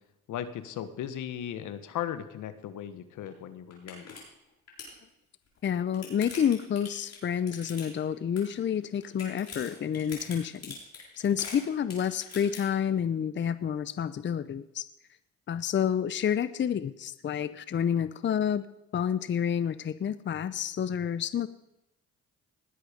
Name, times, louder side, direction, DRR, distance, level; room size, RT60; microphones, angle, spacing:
voice 1, 0.3-4.2, left 10 dB, 80° left, 12 dB, 1.3 m, -37 dB
sound 1, 3.3-3.4 3.7-4.2 4.5-5.0 5.6-8.1 8.4-8.8 9.0-12.6, left 5 dB, 60° left, 6.9 m, -43 dB
voice 2, 5.6-10.8 11.2-14.9 15.5-18.6 18.9-21.5, left 8 dB, 40° left, 15 dB, 0.6 m, -29 dB
19.5 x 8.2 x 5.1 m, 0.88 s
cardioid pair, 90°, 30 cm